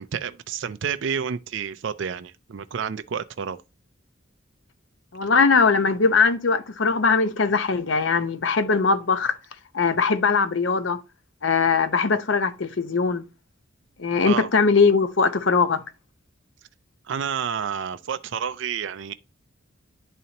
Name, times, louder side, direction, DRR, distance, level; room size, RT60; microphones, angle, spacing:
voice 1, 0.0-3.6 5.2-5.3 14.2-14.5 17.1-19.1, right 7 dB, 60° right, 0.4 m, -30 dB
voice 2, 5.1-9.4 9.7-11.0 11.4-13.2 14.0-15.8, left 4 dB, 60° left, 0.7 m, -20 dB
10.5 x 4.1 x 2.8 m
head